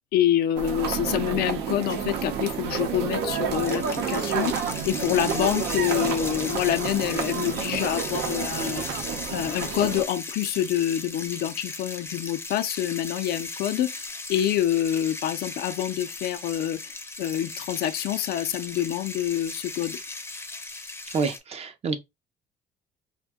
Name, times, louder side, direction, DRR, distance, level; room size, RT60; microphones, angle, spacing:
voice 1, 0.1-4.5 4.9-8.9 9.3-14.0 14.3-16.8 17.2-20.0, left 11 dB, 70° left, 0.5 m, -26 dB
sound 1, 0.6-10.0, right 7 dB, 85° right, 0.7 m, -30 dB
sound 2, 3.5-21.4, left 3 dB, 15° left, 0.6 m, -37 dB
voice 2, 21.1-22.0, right 4 dB, 40° right, 0.5 m, -28 dB
2.6 x 2.2 x 3.5 m
cardioid pair, 110°, 17 cm